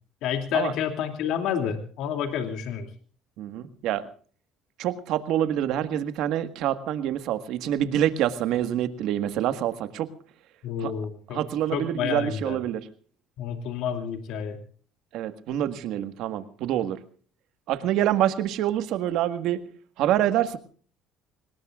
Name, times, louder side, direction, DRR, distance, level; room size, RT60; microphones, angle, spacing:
voice 1, 0.2-2.9 10.6-11.4 11.7-12.6 13.4-14.6, left 8 dB, 75° left, 7 dB, 2.7 m, -29 dB
voice 2, 3.4-4.1 4.8-10.1 10.8-10.9 11.3-12.9 15.1-17.0 17.7-19.6 20.0-20.6, right 11 dB, 75° right, 10 dB, 1.6 m, -26 dB
25.5 x 19.5 x 2.5 m, 0.43 s
cardioid pair, 105°, 0 cm